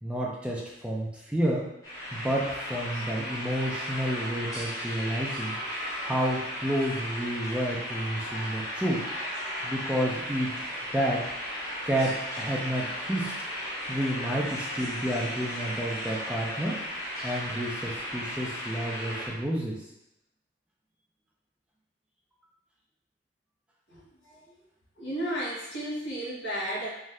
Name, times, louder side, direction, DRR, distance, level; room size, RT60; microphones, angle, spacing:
voice 1, 0.0-1.7 2.1-5.6 6.0-9.0 9.6-10.5 10.9-11.3 11.9-13.4 13.9-16.8 17.2-19.8, right 1 dB, 5° right, -3 dB, 0.3 m, -30 dB
sound 1, 1.8-19.3, equal, 15° left, 0.9 m, -35 dB
voice 2, 23.9-24.5 25.0-26.9, equal, 85° left, -5 dB, 1.1 m, -34 dB
2.6 x 2.3 x 3.2 m, 0.87 s
head